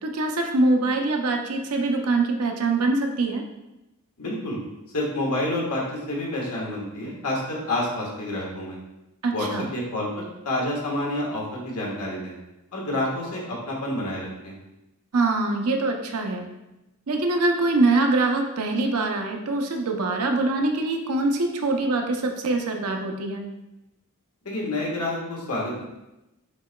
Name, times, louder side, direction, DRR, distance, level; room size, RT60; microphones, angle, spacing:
voice 1, 0.0-3.4 9.2-9.7 15.1-16.5 17.1-23.4, right 2 dB, 85° right, 3 dB, 0.7 m, -24 dB
voice 2, 4.2-4.6 4.9-8.8 9.3-9.5 9.7-12.3 12.7-14.5 24.4-25.8, left 1 dB, 90° left, -3 dB, 1.4 m, -28 dB
5.9 x 3.9 x 2.2 m, 0.94 s
head